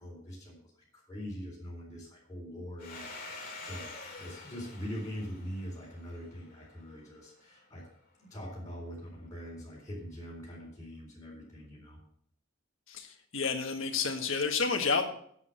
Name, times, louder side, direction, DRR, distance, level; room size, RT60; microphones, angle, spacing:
voice 1, 0.0-3.9 4.2-7.8 8.2-12.0, equal, 15° left, -6 dB, 4.0 m, -43 dB
Domestic sounds home sounds, 2.8-7.2, left 3 dB, 45° left, 2.8 m, -47 dB
voice 2, 12.9-15.1, left 4 dB, 70° left, 5 dB, 1.6 m, -30 dB
8.0 x 7.9 x 7.7 m, 0.64 s
head